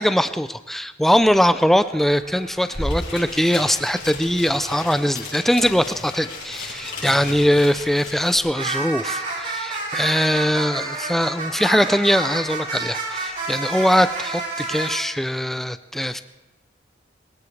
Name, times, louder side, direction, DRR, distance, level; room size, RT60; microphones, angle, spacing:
voice 1, 0.0-16.2, equal, ahead, 11 dB, 0.5 m, -21 dB
sound 1, 1.2-4.0 4.5-15.0, right 3 dB, 50° right, 6.5 m, -32 dB
sound 2, 2.4-2.5 2.6-8.4, left 2 dB, 75° left, 6.7 m, -34 dB
22.0 x 20.0 x 3.3 m, 1.1 s
head